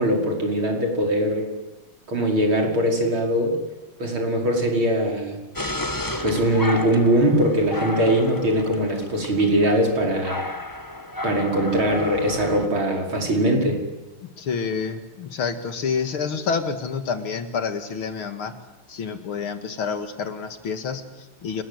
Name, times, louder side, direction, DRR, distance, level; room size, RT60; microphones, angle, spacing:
voice 1, 0.0-1.5 2.1-3.6 4.0-5.4 6.2-10.4 11.2-13.8, right 1 dB, 75° right, 2 dB, 6.0 m, -21 dB
sound 1, 5.5-12.7, left 1 dB, 10° left, 1.2 m, -32 dB
voice 2, 14.2-18.5 18.9-21.6, left 5 dB, 80° left, 8 dB, 2.8 m, -28 dB
29.5 x 20.5 x 8.1 m, 1.1 s
omnidirectional pair, 2.3 m